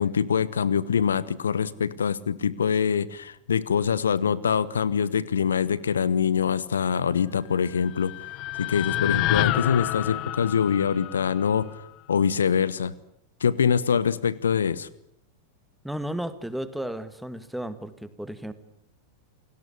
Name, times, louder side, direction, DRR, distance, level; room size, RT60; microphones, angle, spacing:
voice 1, 0.0-8.1 8.6-11.7 12.1-12.9 13.4-14.9, left 7 dB, 70° left, 20 dB, 1.0 m, -24 dB
sound 1, 7.6-11.9, left 17 dB, 40° left, 1.0 m, -29 dB
voice 2, 15.8-18.5, right 1 dB, ahead, 12 dB, 2.0 m, -33 dB
29.0 x 18.5 x 9.9 m, 0.74 s
figure-of-eight pair, 90°, 0 cm